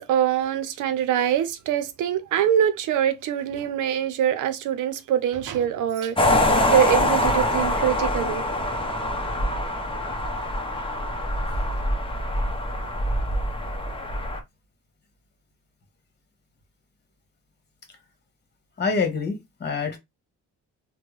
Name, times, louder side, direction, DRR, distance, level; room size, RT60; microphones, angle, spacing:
voice 1, 0.0-8.4, right 10 dB, 80° right, 0.6 m, -24 dB
sound 1, 6.2-14.4, left 1 dB, 15° left, 0.8 m, -24 dB
voice 2, 18.8-20.0, left 4 dB, 35° left, 1.3 m, -26 dB
3.5 x 2.2 x 3.1 m
cardioid pair, 90°, 30 cm